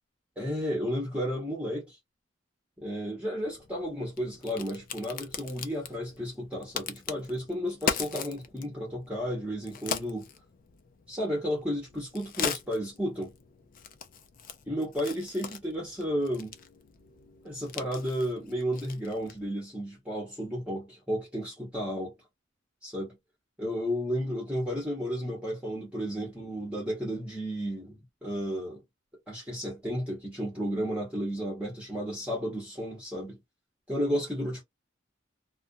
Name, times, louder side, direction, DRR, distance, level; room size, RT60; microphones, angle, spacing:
voice 1, 0.4-2.0 2.8-10.3 11.1-13.3 14.7-16.5 17.4-22.1 22.8-23.2 23.6-28.8 29.3-33.4 33.9-34.6, equal, 5° right, 1.0 m, -33 dB
Crack, 3.4-19.5, left 7 dB, 45° left, 0.4 m, -40 dB
2.5 x 2.2 x 2.5 m
head